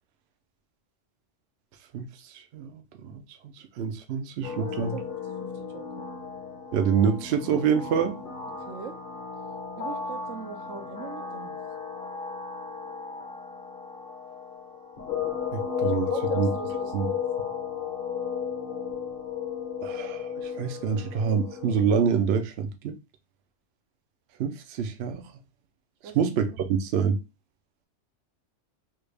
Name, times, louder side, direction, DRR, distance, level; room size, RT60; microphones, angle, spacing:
voice 1, 1.9-3.2 3.8-5.0 6.7-8.2 15.5-16.1 16.3-16.5 16.9-17.1 19.8-22.9 24.4-25.2 26.2-27.2, right 7 dB, 65° right, 0.7 m, -26 dB
sound 1, 4.4-22.0, left 7 dB, 50° left, 1.0 m, -34 dB
voice 2, 4.5-6.1 8.7-9.0 9.8-11.5 15.8-17.2 26.0-26.4, right 7 dB, 80° right, 1.0 m, -41 dB
3.3 x 2.4 x 3.3 m
omnidirectional pair, 1.3 m